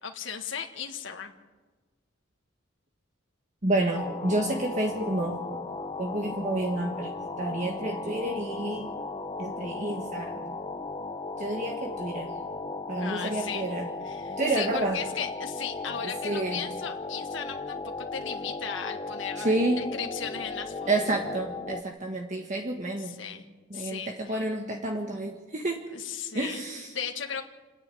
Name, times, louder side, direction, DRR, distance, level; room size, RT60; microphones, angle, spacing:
voice 1, 0.0-1.3 13.0-13.7 14.0-20.9 23.0-23.5 23.7-24.4 25.9-26.6 26.9-27.4, left 7 dB, 65° left, 4 dB, 1.6 m, -36 dB
voice 2, 3.6-5.4 6.0-8.9 9.4-10.6 11.4-12.3 12.9-13.9 14.3-15.0 16.0-16.6 19.4-19.8 20.9-23.1 23.7-25.8 26.3-26.9, right 2 dB, 35° right, 1 dB, 1.6 m, -29 dB
sound 1, 3.9-21.8, left 3 dB, 25° left, 0.8 m, -36 dB
29.0 x 10.0 x 9.3 m, 1.3 s
head